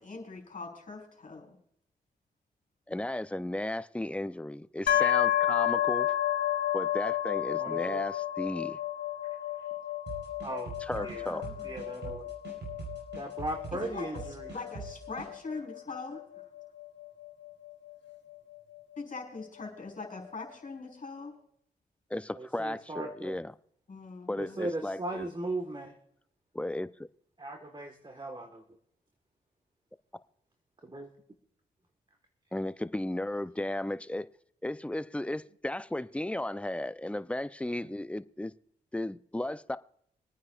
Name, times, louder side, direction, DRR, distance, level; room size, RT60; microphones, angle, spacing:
voice 1, 0.0-1.6 10.9-11.7 13.7-16.2 19.0-21.4 23.9-24.6, left 4 dB, 45° left, 3.9 m, -42 dB
voice 2, 2.9-6.2 6.7-8.8 10.8-11.4 22.1-23.5 24.3-25.3 26.5-27.1 32.5-34.3 34.6-38.5 38.9-39.8, left 1 dB, 5° left, 0.5 m, -35 dB
sound 1, 4.9-18.6, left 12 dB, 80° left, 1.2 m, -32 dB
voice 3, 7.6-8.0 10.4-10.7 11.0-11.2 11.6-12.2 13.2-14.5 22.3-23.4 24.4-25.9 27.4-28.6 30.8-31.1, right 2 dB, 25° right, 1.5 m, -37 dB
sound 2, 10.1-15.3, right 5 dB, 75° right, 4.7 m, -43 dB
25.0 x 9.6 x 2.4 m
supercardioid pair, 45°, 19 cm